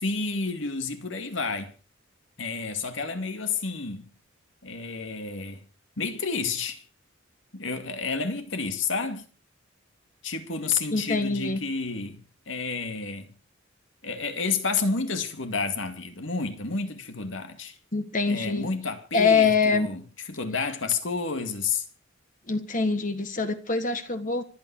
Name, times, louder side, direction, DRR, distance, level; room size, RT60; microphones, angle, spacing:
voice 1, 0.0-1.7 2.4-4.1 4.6-5.7 6.0-6.8 7.5-9.3 10.2-12.2 12.5-13.3 14.0-17.8 18.3-21.8, left 4 dB, 70° left, 2.4 m, -30 dB
voice 2, 10.9-11.6 17.9-18.7 19.1-19.9 22.5-24.4, left 4 dB, 40° left, 1.7 m, -24 dB
25.5 x 9.1 x 4.8 m
head